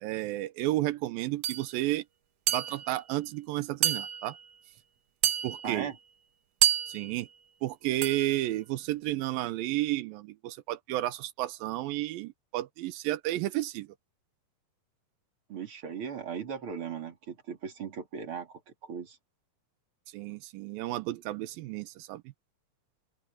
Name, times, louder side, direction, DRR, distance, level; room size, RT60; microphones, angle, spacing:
voice 1, 0.0-2.0 2.5-4.4 5.4-5.9 6.9-7.3 7.6-13.9 20.1-22.2, right 16 dB, 90° right, 2.5 m, -32 dB
sound 1, 1.4-1.6 2.5-3.0 3.8-4.5 5.2-5.9 6.6-7.2 8.0-8.4, right 11 dB, 75° right, 1.5 m, -29 dB
voice 2, 5.6-5.9 15.5-19.2, right 7 dB, 40° right, 3.5 m, -38 dB
open air
omnidirectional pair, 4.1 m